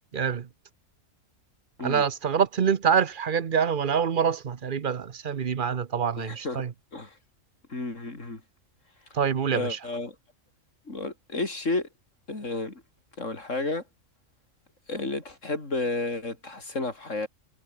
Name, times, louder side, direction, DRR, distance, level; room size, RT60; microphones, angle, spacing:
voice 1, 0.1-0.5 1.8-6.7 9.1-9.8, right 7 dB, 45° right, 0.9 m, -25 dB
voice 2, 6.2-6.6 6.9-7.1 7.7-8.4 9.5-10.1 10.9-11.9 12.3-12.8 13.2-13.8 14.9-17.3, left 2 dB, 70° left, 4.8 m, -31 dB
omnidirectional pair, 1.3 m